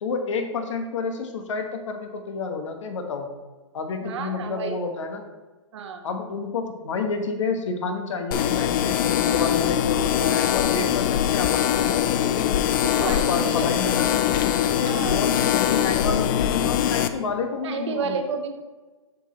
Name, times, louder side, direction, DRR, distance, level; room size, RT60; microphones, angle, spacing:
voice 1, 0.0-3.3 3.7-5.2 6.0-12.6 13.0-14.2 14.6-18.2, left 4 dB, 70° left, 5 dB, 1.4 m, -29 dB
voice 2, 4.0-4.8 5.7-6.0 12.8-14.0 14.7-15.3 17.6-18.5, right 5 dB, 60° right, 5 dB, 1.2 m, -31 dB
sound 1, 8.3-17.1, left 10 dB, 40° left, 0.5 m, -22 dB
8.0 x 6.5 x 3.2 m, 1.3 s
hypercardioid pair, 140°, 16 cm